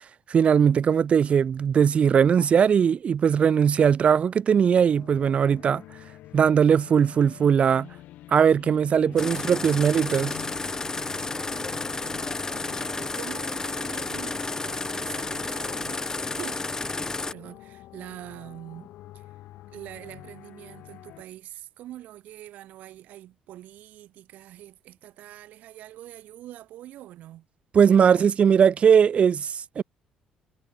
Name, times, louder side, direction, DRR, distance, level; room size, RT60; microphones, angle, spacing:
voice 1, 0.3-5.8 6.3-7.9 8.3-10.4 27.7-29.8, right 7 dB, 50° right, 0.4 m, -20 dB
sound 1, 4.6-21.2, left 15 dB, 75° left, 4.5 m, -47 dB
sound 2, 9.2-17.3, left 3 dB, 20° left, 0.5 m, -31 dB
voice 2, 11.1-16.0 16.4-16.6 17.3-19.3 19.7-27.5, right 14 dB, 70° right, 3.3 m, -44 dB
supercardioid pair, 60°, 3 cm